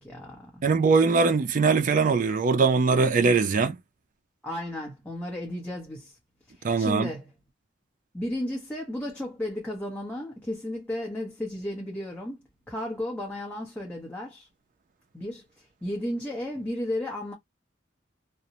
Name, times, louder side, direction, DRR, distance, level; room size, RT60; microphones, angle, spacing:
voice 1, 0.0-0.7 4.4-6.2 6.5-7.3 8.1-12.4 12.7-14.5 15.1-17.3, left 1 dB, 10° left, 0.7 m, -34 dB
voice 2, 0.6-3.8 6.6-7.1, right 4 dB, 45° right, 0.4 m, -21 dB
2.5 x 2.0 x 2.7 m
head